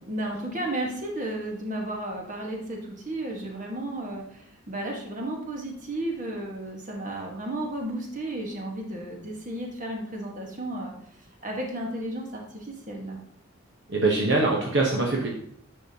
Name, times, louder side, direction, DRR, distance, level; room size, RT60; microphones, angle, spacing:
voice 1, 0.1-13.2, right 1 dB, 35° right, 0 dB, 1.4 m, -33 dB
voice 2, 13.9-15.3, right 3 dB, 55° right, -1 dB, 1.0 m, -23 dB
10.0 x 5.7 x 2.8 m, 0.68 s
head